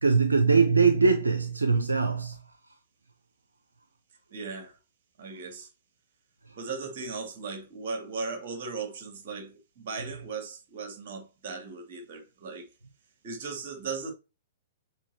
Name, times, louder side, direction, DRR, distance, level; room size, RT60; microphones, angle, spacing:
voice 1, 0.0-2.4, right 4 dB, 75° right, 0.8 m, -22 dB
voice 2, 4.3-4.8 5.2-5.7 6.6-12.7 13.2-14.1, right 4 dB, 45° right, 2.5 m, -37 dB
7.2 x 4.5 x 2.9 m
figure-of-eight pair, 110°, 0 cm